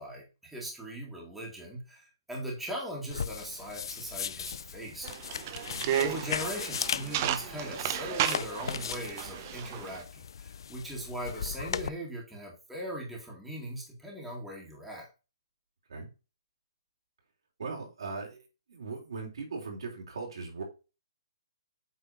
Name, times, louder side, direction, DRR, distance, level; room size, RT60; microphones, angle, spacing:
voice 1, 0.0-5.1 6.0-15.1, equal, 5° right, -3 dB, 2.2 m, -39 dB
sound 1, 3.1-11.9, left 7 dB, 60° left, 0.5 m, -38 dB
sound 2, 5.0-10.0, right 11 dB, 30° right, 0.7 m, -33 dB
voice 2, 5.6-6.0 15.9-16.1 17.6-18.4 18.7-20.6, right 4 dB, 75° right, 0 dB, 3.4 m, -39 dB
8.3 x 4.1 x 4.1 m, 0.30 s
hypercardioid pair, 160°, 3 cm